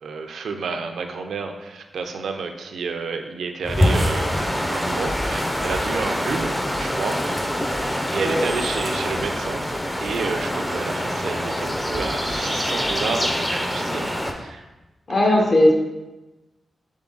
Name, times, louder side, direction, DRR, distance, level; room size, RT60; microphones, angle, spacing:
voice 1, 0.0-7.2 7.7-14.6 15.1-15.7, right 4 dB, 85° right, 5 dB, 0.4 m, -30 dB
sound 1, 3.6-14.3, equal, 10° left, 0.5 m, -25 dB
voice 2, 15.1-15.7, left 1 dB, 50° left, 0 dB, 0.9 m, -17 dB
3.8 x 3.6 x 3.8 m, 1.1 s
cardioid pair, 85°, 0 cm